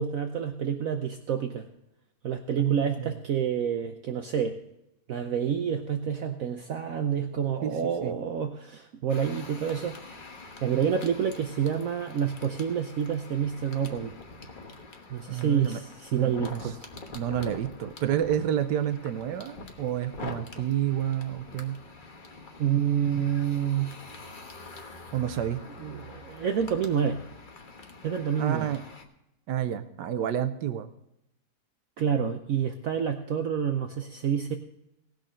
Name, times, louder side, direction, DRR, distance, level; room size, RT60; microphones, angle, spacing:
voice 1, 0.0-1.7 2.2-4.6 5.1-10.2 10.6-14.1 15.1-16.7 22.6-23.9 25.8-27.2 28.0-28.7 32.0-34.6, right 8 dB, 60° right, 6 dB, 1.1 m, -28 dB
voice 2, 2.6-3.2 7.6-8.2 15.3-15.8 16.1-16.7 17.1-21.8 25.1-25.6 28.4-28.8 29.5-30.9, right 10 dB, 80° right, 10 dB, 1.3 m, -29 dB
sound 1, 9.1-29.0, left 3 dB, 35° left, 1.2 m, -45 dB
18.0 x 6.5 x 5.0 m, 0.84 s
omnidirectional pair, 1.8 m